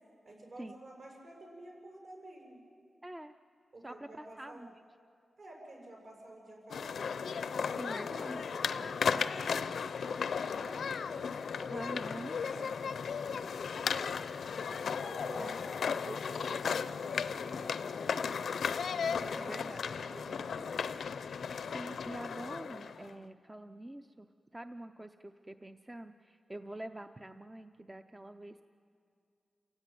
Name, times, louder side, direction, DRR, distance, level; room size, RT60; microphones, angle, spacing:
voice 1, 0.2-2.6 3.7-4.7 5.4-8.0 8.4-9.5 9.8-11.8 12.3-14.1 14.7-18.5 19.0-20.8, right 1 dB, 60° right, -1 dB, 7.2 m, -51 dB
voice 2, 3.0-3.3 3.8-4.7 7.7-8.5 11.7-12.4 15.4-15.6 19.4-19.9 21.7-24.3 24.5-28.6, right 1 dB, 15° right, 8 dB, 0.6 m, -45 dB
sound 1, 6.7-23.1, left 6 dB, 80° left, 0.6 m, -35 dB
29.0 x 16.0 x 9.2 m, 2.5 s
wide cardioid pair, 140°, 0 cm